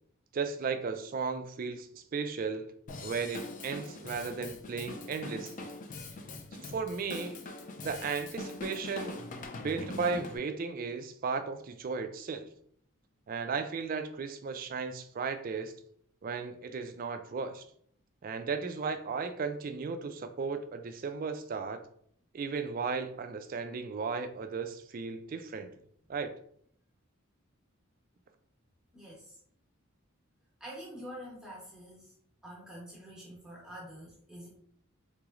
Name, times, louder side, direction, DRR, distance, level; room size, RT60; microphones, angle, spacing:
voice 1, 0.3-2.7 3.0-5.7 6.5-7.4 7.8-9.2 9.6-12.5 13.3-15.7 16.2-17.6 18.2-21.8 22.3-25.7 26.1-26.3, right 5 dB, 40° right, 8 dB, 0.3 m, -35 dB
Drum kit / Drum, 2.9-10.4, left 2 dB, 35° left, 0.3 m, -42 dB
voice 2, 28.9-29.4 30.6-32.1 32.4-34.5, equal, 5° right, -5 dB, 0.9 m, -46 dB
3.8 x 3.0 x 2.4 m, 0.64 s
head